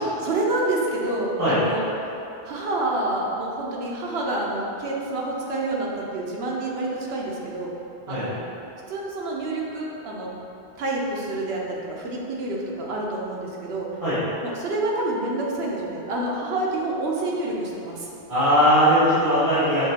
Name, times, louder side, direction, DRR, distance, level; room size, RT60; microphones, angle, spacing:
voice 1, 0.0-1.8 2.4-7.7 8.1-8.4 8.9-10.3 10.8-13.9 14.4-18.1, right 2 dB, 85° right, -3 dB, 1.0 m, -28 dB
voice 2, 18.3-19.8, equal, 35° right, -17 dB, 1.5 m, -19 dB
5.8 x 3.1 x 2.8 m, 2.8 s
omnidirectional pair, 1.0 m